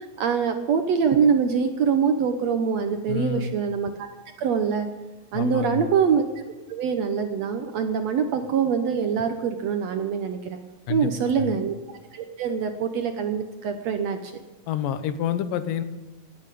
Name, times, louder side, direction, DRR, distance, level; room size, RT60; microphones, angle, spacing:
voice 1, 0.2-4.1 4.4-4.9 5.3-6.2 6.7-10.6 10.9-11.7 12.1-14.3, right 6 dB, 70° right, 6 dB, 1.7 m, -24 dB
voice 2, 3.1-3.6 5.3-5.9 10.9-11.6 14.7-15.8, left 8 dB, 75° left, 11 dB, 2.6 m, -28 dB
18.0 x 8.8 x 8.5 m, 1.2 s
omnidirectional pair, 4.0 m